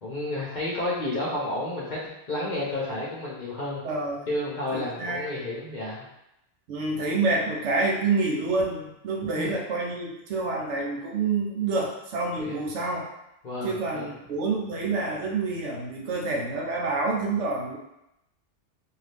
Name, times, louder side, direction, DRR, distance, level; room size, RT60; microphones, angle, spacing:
voice 1, 0.0-2.0 2.3-3.8 4.3-6.1 9.3-9.5 12.4-12.6 13.4-14.1, left 1 dB, 45° left, -6 dB, 0.7 m, -31 dB
voice 2, 3.8-4.2 4.7-5.2 6.7-13.1 13.6-17.8, right 3 dB, 75° right, -1 dB, 0.9 m, -27 dB
2.7 x 2.4 x 3.3 m, 0.85 s
omnidirectional pair, 1.2 m